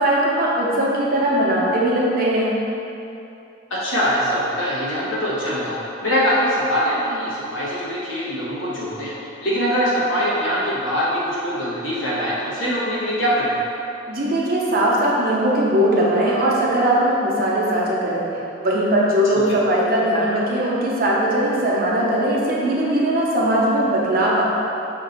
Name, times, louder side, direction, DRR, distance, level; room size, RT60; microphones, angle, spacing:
voice 1, 0.0-2.6 14.1-18.3 18.6-24.4, right 1 dB, 50° right, -5 dB, 0.8 m, -19 dB
voice 2, 3.7-5.8 6.0-9.1 9.4-13.6 19.5-19.6, equal, 85° left, -8 dB, 1.2 m, -22 dB
5.1 x 2.6 x 3.9 m, 2.8 s
head